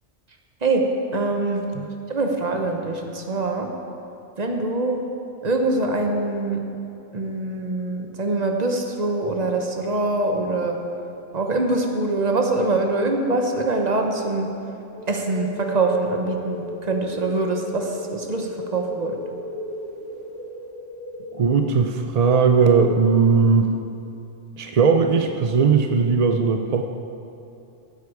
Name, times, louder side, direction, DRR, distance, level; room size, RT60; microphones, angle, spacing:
voice 1, 1.1-1.6 2.1-3.7 4.4-5.0 5.4-6.6 7.1-10.8 11.3-14.5 15.1-19.1, right 2 dB, 35° right, 3 dB, 1.1 m, -24 dB
sound 1, 14.9-21.3, equal, 70° right, 1.6 m, -36 dB
voice 2, 21.3-23.7 24.6-26.8, right 5 dB, 55° right, 5 dB, 0.4 m, -18 dB
15.0 x 8.1 x 4.8 m, 2.7 s
omnidirectional pair, 1.3 m